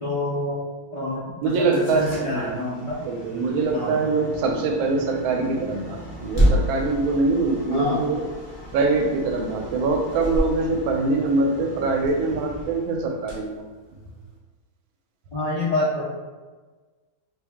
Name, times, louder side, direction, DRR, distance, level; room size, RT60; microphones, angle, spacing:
voice 1, 0.0-0.6 0.9-3.0 3.7-3.9 7.7-8.0 15.3-16.0, left 2 dB, 65° left, -9 dB, 0.3 m, -27 dB
sound 1, 1.4-14.4, equal, 20° left, 0.7 m, -31 dB
voice 2, 1.4-2.5 3.0-8.2 8.7-13.6, right 3 dB, 85° right, 3 dB, 1.4 m, -23 dB
3.3 x 2.6 x 3.5 m, 1.3 s
omnidirectional pair, 2.2 m